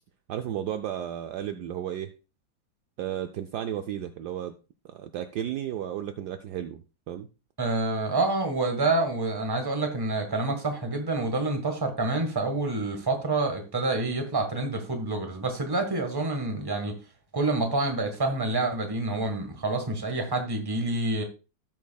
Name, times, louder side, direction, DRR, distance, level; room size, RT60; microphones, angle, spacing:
voice 1, 0.3-2.1 3.0-4.5 4.8-7.3, right 10 dB, 70° right, 7 dB, 1.1 m, -33 dB
voice 2, 7.6-17.0 17.3-21.2, right 2 dB, 15° right, 5 dB, 1.2 m, -27 dB
17.0 x 6.2 x 2.3 m, 0.32 s
omnidirectional pair, 2.0 m